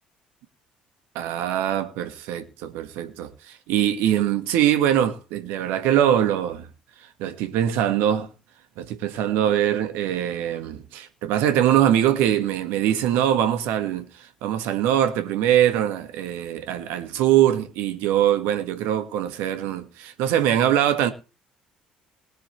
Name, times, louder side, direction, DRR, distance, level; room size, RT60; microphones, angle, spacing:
voice 1, 1.1-6.7 7.0-8.3 8.8-21.1, right 11 dB, 65° right, 1.7 m, -22 dB
21.0 x 7.7 x 3.3 m
hypercardioid pair, 55°, 4 cm